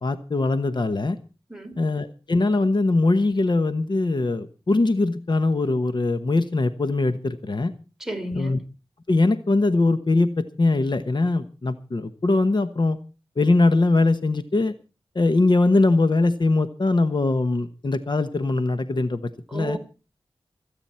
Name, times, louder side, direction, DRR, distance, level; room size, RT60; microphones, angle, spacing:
voice 1, 0.0-1.2 1.8-7.7 8.4-8.6 9.1-13.0 13.4-14.7 15.1-19.8, left 2 dB, 55° left, 1.1 m, -21 dB
voice 2, 1.5-1.9 8.0-8.5 19.5-19.8, right 1 dB, 5° right, 3.6 m, -32 dB
26.0 x 9.0 x 4.4 m
wide cardioid pair, 60°, 10 cm